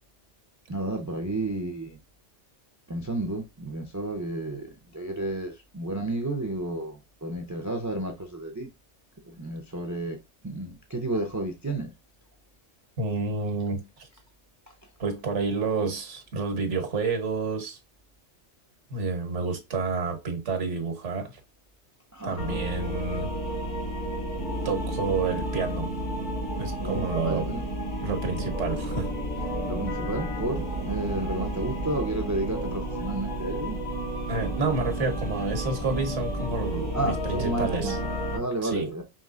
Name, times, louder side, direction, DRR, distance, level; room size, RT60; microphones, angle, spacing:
voice 1, 0.7-2.0 2.9-8.7 9.2-10.2 10.4-11.9 14.7-14.8 22.1-22.9 26.8-27.6 29.7-33.8 36.9-39.0, right 2 dB, 25° right, 0.4 m, -32 dB
voice 2, 13.0-14.1 15.0-17.8 18.9-21.4 22.2-23.3 24.6-25.9 26.6-27.4 28.0-29.1 34.3-38.0 38.6-38.9, right 4 dB, 75° right, 1.4 m, -29 dB
sound 1, 22.4-38.4, right 1 dB, 80° left, 2.8 m, -31 dB
5.2 x 3.2 x 2.5 m
omnidirectional pair, 1.2 m